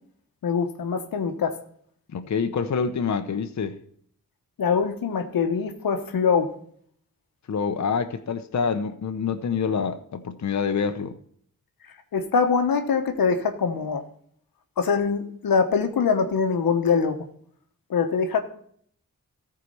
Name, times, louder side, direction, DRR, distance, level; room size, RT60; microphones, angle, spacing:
voice 1, 0.4-1.6 4.6-6.5 12.1-14.0 14.8-17.2 17.9-18.4, left 5 dB, 85° left, 1.0 m, -23 dB
voice 2, 2.1-3.8 7.5-11.2, left 6 dB, 55° left, 0.8 m, -26 dB
14.0 x 4.8 x 5.4 m
cardioid pair, 55°, 34 cm